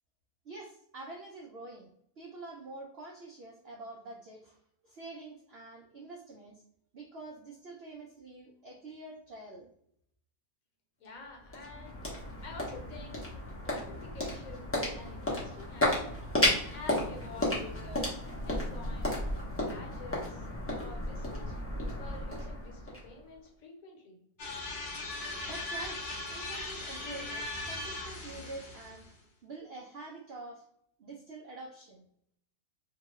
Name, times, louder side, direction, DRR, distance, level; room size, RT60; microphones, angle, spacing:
voice 1, 0.4-1.9 2.2-4.6 4.8-6.6 6.9-9.7 25.4-29.1 29.4-30.6 31.0-32.1, right 2 dB, 85° right, -1 dB, 0.5 m, -46 dB
voice 2, 11.0-12.1 12.4-13.2 13.6-16.1 16.7-19.1 19.6-20.4 20.7-21.6 22.0-24.2, left 3 dB, 65° left, 0 dB, 1.2 m, -48 dB
sound 1, 11.0-23.5, left 1 dB, 20° left, 0.3 m, -33 dB
sound 2, 24.4-29.1, left 2 dB, 45° left, 0.7 m, -39 dB
2.8 x 2.2 x 3.0 m, 0.69 s
omnidirectional pair, 1.6 m